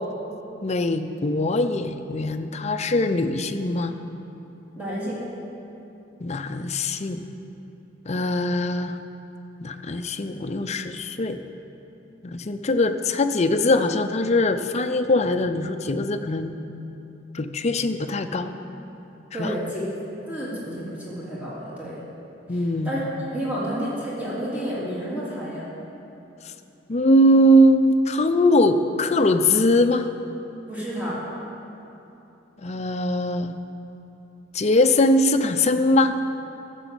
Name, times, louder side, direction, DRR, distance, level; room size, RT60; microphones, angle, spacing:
voice 1, 0.6-3.9 6.2-7.2 8.1-9.0 9.6-11.4 12.2-16.5 17.3-18.5 19.4-19.5 22.5-23.0 26.9-30.1 32.6-33.5 34.5-36.1, left 1 dB, 35° left, 8 dB, 0.5 m, -21 dB
voice 2, 4.7-5.2 19.3-19.9 20.3-22.0 22.5-25.7 30.7-31.2, equal, 10° right, -8 dB, 2.9 m, -30 dB
12.0 x 7.0 x 7.9 m, 2.9 s
head